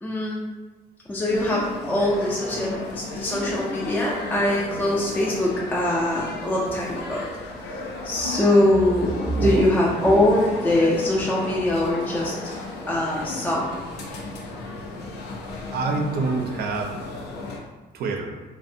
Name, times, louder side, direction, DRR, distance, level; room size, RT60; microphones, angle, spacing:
voice 1, 0.0-0.4 1.1-12.3 12.9-13.7, left 1 dB, 10° left, -5 dB, 0.3 m, -23 dB
sound 1, 1.3-17.6, left 2 dB, 85° left, 0.5 m, -34 dB
voice 2, 9.3-9.7 15.7-16.9 17.9-18.3, right 4 dB, 70° right, 3 dB, 0.4 m, -27 dB
2.5 x 2.1 x 2.5 m, 1.2 s
cardioid pair, 110°, 17 cm